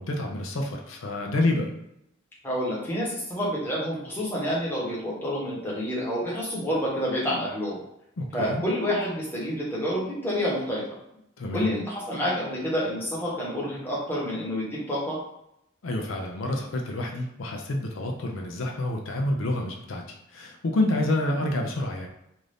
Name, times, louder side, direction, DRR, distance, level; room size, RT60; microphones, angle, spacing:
voice 1, 0.0-1.7 8.2-8.6 11.4-11.7 15.8-22.1, left 1 dB, 75° left, 2 dB, 0.5 m, -28 dB
voice 2, 2.4-7.8 8.3-10.8 11.5-15.2, equal, 10° left, -7 dB, 1.0 m, -28 dB
2.6 x 2.5 x 3.3 m, 0.79 s
head